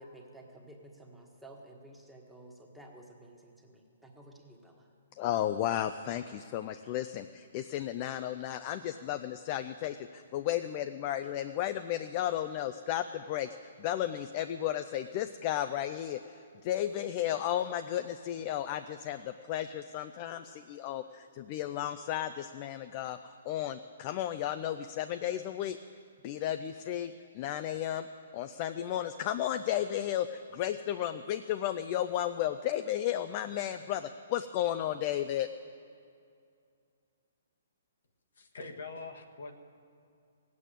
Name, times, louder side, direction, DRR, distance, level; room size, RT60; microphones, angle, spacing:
voice 1, 0.0-4.9, right 1 dB, ahead, -1 dB, 1.4 m, -53 dB
voice 2, 5.1-23.2 23.5-25.8 26.2-28.1 28.3-35.5, left 11 dB, 35° left, 9 dB, 0.4 m, -33 dB
voice 3, 38.4-39.5, left 3 dB, 80° left, 3 dB, 1.5 m, -43 dB
17.5 x 8.4 x 8.8 m, 2.4 s
hypercardioid pair, 150°, 0 cm